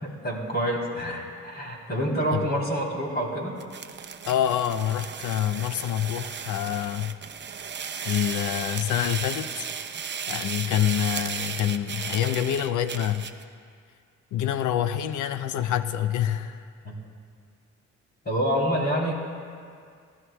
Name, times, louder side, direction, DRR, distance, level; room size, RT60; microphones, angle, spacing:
voice 1, 0.0-3.6 16.8-16.9 18.2-19.1, equal, 35° left, -1 dB, 3.3 m, -27 dB
sound 1, 3.6-13.4, right 6 dB, 35° right, 0.7 m, -35 dB
voice 2, 4.3-7.2 8.0-9.7 10.3-13.3 14.3-16.7, left 10 dB, 80° left, 11 dB, 0.6 m, -26 dB
25.5 x 12.5 x 2.3 m, 2.2 s
cardioid pair, 90°, 30 cm